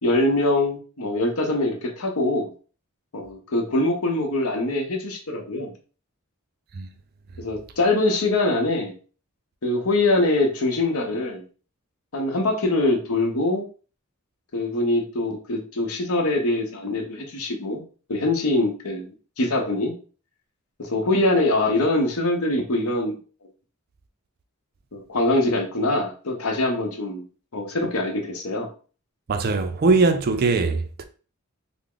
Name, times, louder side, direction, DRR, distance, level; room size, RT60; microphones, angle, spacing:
voice 1, 0.0-2.5 3.1-5.7 7.4-8.9 9.6-11.4 12.1-13.6 14.5-17.8 18.1-19.9 20.8-23.1 24.9-27.2 27.5-28.7, left 2 dB, 80° left, 0.8 m, -23 dB
voice 2, 29.3-31.0, right 3 dB, 45° right, 0.4 m, -21 dB
3.4 x 2.0 x 3.7 m
head